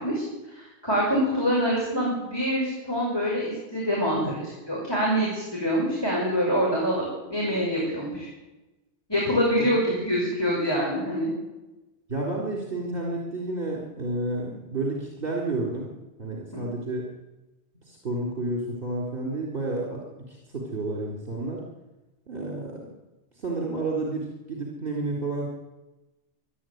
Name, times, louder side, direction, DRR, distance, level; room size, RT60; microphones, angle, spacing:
voice 1, 0.0-4.2 4.7-7.0 7.3-8.3 9.1-11.3 16.5-16.7, equal, 20° left, -4 dB, 6.0 m, -25 dB
voice 2, 12.1-15.9 16.2-17.1 17.8-21.6 22.3-22.9 23.3-25.5, right 2 dB, 50° right, -3 dB, 4.4 m, -31 dB
26.5 x 11.5 x 9.5 m, 1.1 s
omnidirectional pair, 1.2 m